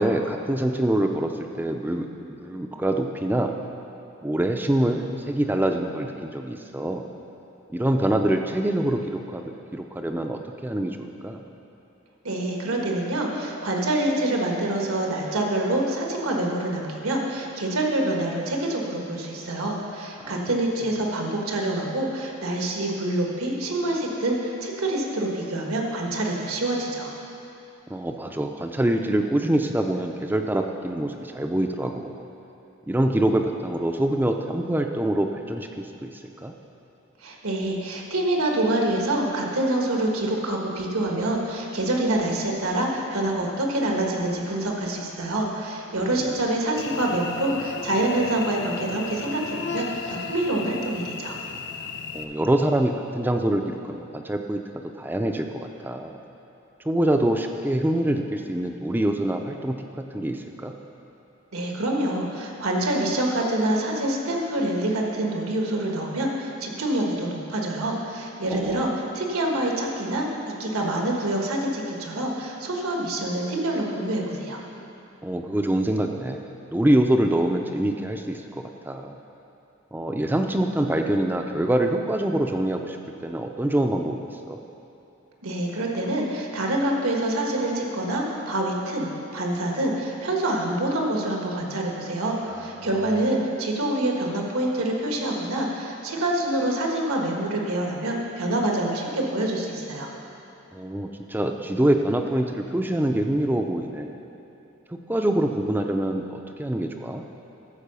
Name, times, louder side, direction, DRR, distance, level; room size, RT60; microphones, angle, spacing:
voice 1, 0.0-2.1 2.4-3.5 4.2-7.0 7.7-11.5 20.2-20.4 27.9-32.2 32.9-36.1 36.4-36.5 46.1-46.3 52.1-56.2 56.9-60.7 68.5-68.8 75.2-79.2 79.9-84.2 84.5-84.6 92.5-92.9 100.7-104.2 104.9-107.2, right 1 dB, 10° right, 4 dB, 0.4 m, -25 dB
voice 2, 12.2-27.1 37.2-51.4 61.5-74.6 85.4-89.1 89.3-100.1, right 1 dB, 90° right, 0 dB, 1.5 m, -26 dB
Cricket / Buzz, 46.8-52.2, left 5 dB, 55° left, 0.7 m, -35 dB
13.5 x 4.8 x 6.8 m, 2.8 s
head